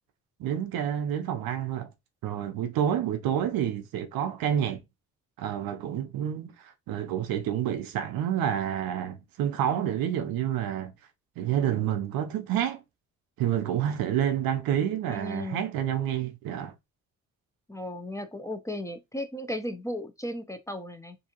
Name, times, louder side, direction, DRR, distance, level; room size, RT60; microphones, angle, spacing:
voice 1, 0.4-1.9 2.2-4.8 5.4-10.9 11.4-12.8 13.4-16.7, right 10 dB, 75° right, 0.6 m, -29 dB
voice 2, 15.1-15.7 17.7-21.2, left 1 dB, 10° left, 0.5 m, -35 dB
2.6 x 2.4 x 2.8 m
supercardioid pair, 50°, 35 cm